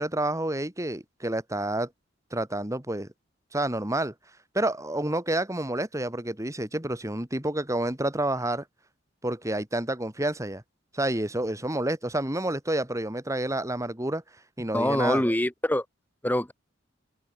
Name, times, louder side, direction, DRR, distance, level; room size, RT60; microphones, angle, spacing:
voice 1, 0.0-1.9 2.3-3.1 3.5-4.1 4.5-8.6 9.2-10.6 10.9-14.2 14.6-15.2, right 1 dB, 15° right, 3.1 m, -29 dB
voice 2, 14.7-15.8 16.2-16.5, left 1 dB, 10° left, 1.6 m, -24 dB
head